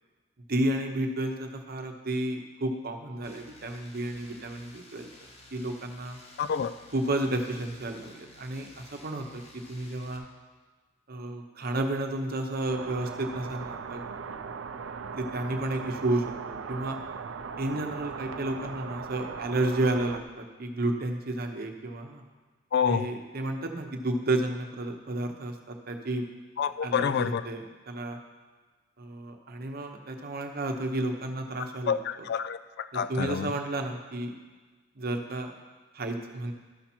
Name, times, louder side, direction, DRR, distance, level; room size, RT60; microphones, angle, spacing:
voice 1, 0.5-5.1 5.5-6.2 6.9-10.3 11.1-14.0 15.2-17.0 17.6-22.2 22.9-26.2 26.8-28.2 29.0-32.0 33.1-34.4 35.0-35.5 35.9-36.5, right 1 dB, 50° right, 4 dB, 0.9 m, -31 dB
sound 1, 3.2-10.2, left 2 dB, 30° left, 1.2 m, -53 dB
voice 2, 6.4-6.7 22.7-23.1 26.6-27.5 31.9-33.5, left 7 dB, 55° left, 12 dB, 0.4 m, -28 dB
sound 2, 12.7-20.2, right 5 dB, 75° right, 0.5 m, -39 dB
13.0 x 5.7 x 4.4 m, 1.3 s
head